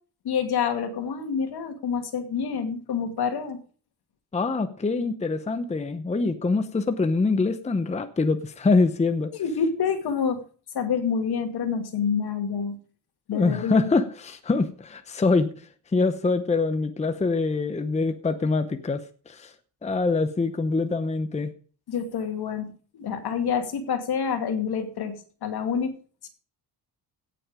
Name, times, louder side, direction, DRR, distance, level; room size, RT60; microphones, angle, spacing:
voice 1, 0.2-3.6 9.3-10.4 10.7-12.8 13.3-13.9 21.9-26.0 26.2-26.3, left 6 dB, 65° left, 7 dB, 2.4 m, -27 dB
voice 2, 4.3-9.3 13.3-19.5 19.8-21.5, left 3 dB, 15° left, 9 dB, 0.8 m, -24 dB
17.0 x 7.7 x 5.0 m, 0.41 s
cardioid pair, 150°, 42 cm